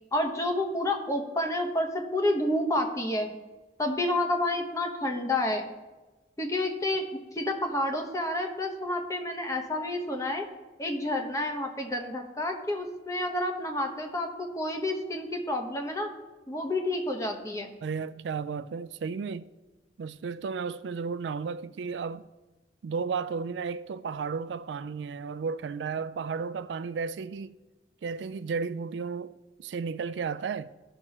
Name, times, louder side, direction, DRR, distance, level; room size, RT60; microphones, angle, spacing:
voice 1, 0.1-3.3 3.8-5.7 6.4-10.4 10.8-16.1 16.5-17.7, left 1 dB, 20° left, 1.1 m, -29 dB
voice 2, 17.8-19.5 20.0-22.3 22.8-27.5 28.0-29.3 29.6-30.7, right 5 dB, 90° right, 0.4 m, -33 dB
15.0 x 6.2 x 2.9 m
head